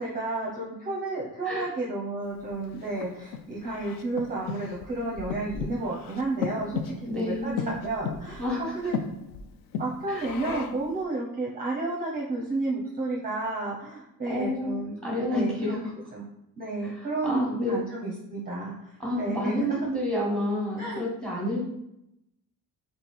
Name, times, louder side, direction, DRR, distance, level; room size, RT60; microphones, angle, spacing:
voice 1, 0.0-9.0 9.7-14.9 15.3-15.8 16.1-16.3 16.6-19.8 20.8-21.1, right 2 dB, 25° right, -3 dB, 0.7 m, -31 dB
Breathing, 2.4-10.9, left 6 dB, 65° left, 0.5 m, -36 dB
voice 2, 7.1-7.7 8.4-8.7 10.1-10.2 14.3-15.8 16.8-17.8 19.0-21.7, left 1 dB, ahead, -3 dB, 1.4 m, -29 dB
3.6 x 3.2 x 4.2 m, 0.82 s
cardioid pair, 145°, 37 cm